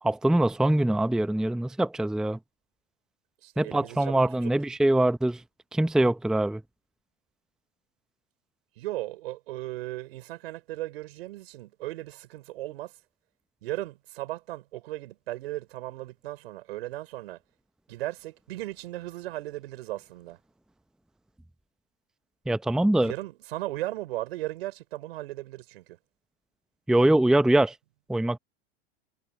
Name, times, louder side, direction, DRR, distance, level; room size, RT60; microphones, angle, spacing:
voice 1, 0.0-2.4 3.6-5.4 5.7-6.6 22.5-23.1 26.9-27.8 28.1-28.4, right 1 dB, ahead, 0.7 m, -23 dB
voice 2, 3.4-4.5 8.8-12.9 13.6-17.4 17.9-20.4 23.0-26.0, right 17 dB, 70° right, 4.8 m, -36 dB
hypercardioid pair, 100°, 31 cm